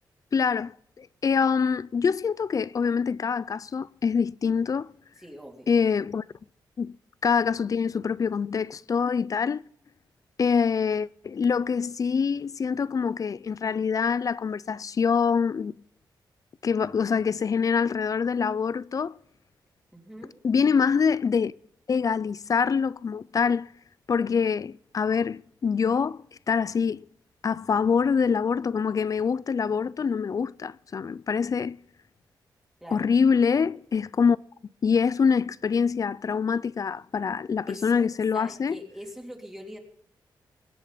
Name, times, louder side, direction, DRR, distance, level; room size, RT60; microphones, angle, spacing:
voice 1, 0.3-0.7 1.0-4.9 5.7-6.2 6.8-6.9 7.2-9.6 10.4-15.7 16.6-19.1 20.4-21.5 21.9-23.7 24.1-26.2 26.5-27.1 27.4-31.8 32.9-34.4 34.8-38.8, left 6 dB, 45° left, 0.5 m, -25 dB
voice 2, 5.2-5.7 19.9-20.4 32.8-33.1 37.7-38.0 38.3-39.8, equal, 5° right, 3.1 m, -42 dB
22.0 x 8.5 x 5.7 m
cardioid pair, 85°, 8 cm